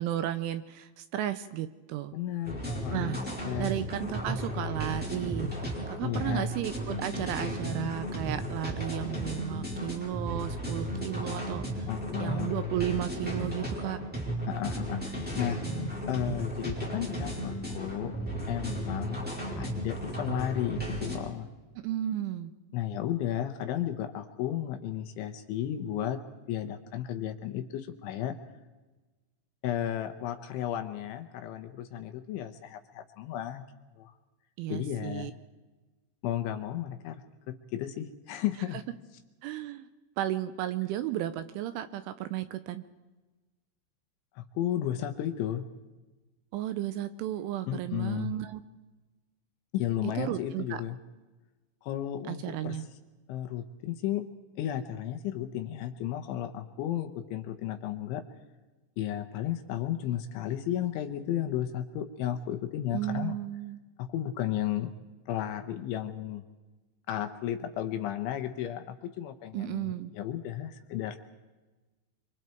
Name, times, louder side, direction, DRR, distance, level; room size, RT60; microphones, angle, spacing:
voice 1, 0.0-2.1 2.9-3.2 3.6-5.5 5.9-11.9 12.2-14.0 21.8-22.5 34.6-35.3 39.4-39.9 40.2-42.8 46.5-48.6 50.0-50.8 52.3-52.9 62.9-63.8 69.5-70.1, right 12 dB, 80° right, 11 dB, 3.0 m, -34 dB
voice 2, 2.1-3.7 6.0-6.5 11.9-12.5 14.5-15.6 16.1-18.2 18.5-19.2 19.6-21.5 22.7-26.2 26.5-28.4 29.6-33.6 34.0-34.1 34.7-35.3 36.2-37.2 37.5-38.8 44.4-45.7 47.7-48.3 49.7-51.0 51.8-52.8 53.3-54.3 54.6-58.2 59.0-63.3 64.0-64.9 65.3-66.4 67.1-71.2, left 11 dB, 75° left, 8 dB, 3.2 m, -33 dB
sound 1, 2.4-21.2, equal, ahead, 4.0 m, -34 dB
26.5 x 25.5 x 4.5 m, 1.2 s
omnidirectional pair, 6.0 m